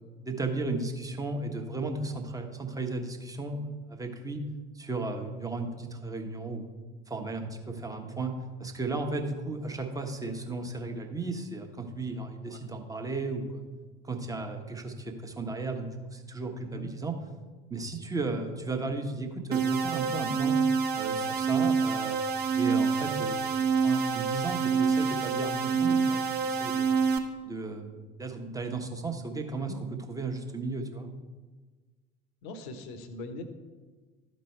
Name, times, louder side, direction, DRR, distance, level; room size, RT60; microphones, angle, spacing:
voice 1, 0.2-4.4 4.7-6.7 7.1-8.3 8.6-13.6 14.0-17.1 17.7-20.6 21.0-22.2 22.6-23.4 23.8-26.9 27.4-29.8 30.1-31.1, right 3 dB, 10° right, 4 dB, 1.2 m, -35 dB
sound 1, 19.5-27.2, right 5 dB, 35° right, 1.0 m, -27 dB
voice 2, 32.4-33.4, left 2 dB, 55° left, 9 dB, 1.0 m, -41 dB
12.5 x 5.3 x 4.4 m, 1.3 s
figure-of-eight pair, 70°, 29 cm